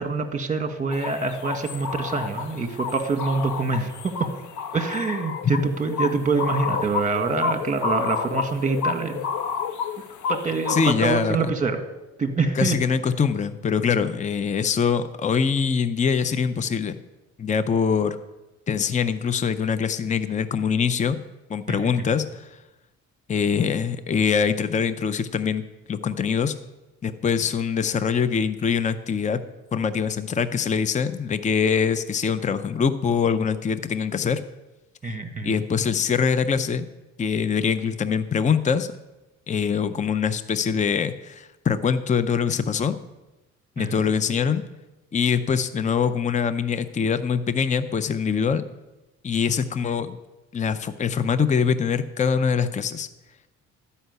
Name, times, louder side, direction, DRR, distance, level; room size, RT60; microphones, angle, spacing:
voice 1, 0.0-4.1 4.7-9.2 10.3-11.8 12.2-12.8 21.7-21.8 35.0-35.5 43.8-44.0, right 4 dB, 25° right, 7 dB, 1.6 m, -25 dB
sound 1, 0.9-10.9, left 6 dB, 80° left, 0.8 m, -30 dB
voice 2, 10.7-11.6 12.5-17.0 17.4-18.2 18.7-21.2 21.5-22.6 23.3-26.5 27.0-29.4 29.7-34.4 35.1-35.2 35.4-36.9 37.2-38.9 39.5-43.0 43.8-44.6 45.1-48.6 49.2-50.2 50.5-53.1, left 6 dB, 25° left, 12 dB, 0.6 m, -23 dB
12.5 x 5.6 x 8.1 m, 1.0 s
cardioid pair, 90°, 30 cm